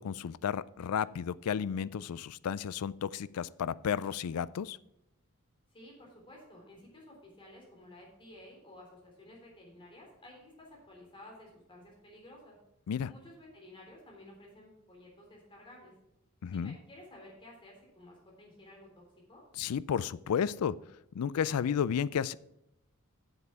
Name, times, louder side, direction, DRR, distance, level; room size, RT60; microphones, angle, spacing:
voice 1, 0.0-4.8 12.9-13.1 16.4-16.7 19.6-20.8 21.1-22.4, left 7 dB, 80° left, 18 dB, 0.4 m, -32 dB
voice 2, 5.7-12.6 13.1-15.9 16.5-19.0 19.3-19.4, left 1 dB, 25° left, -2 dB, 3.5 m, -53 dB
7.9 x 7.4 x 5.7 m, 0.84 s
head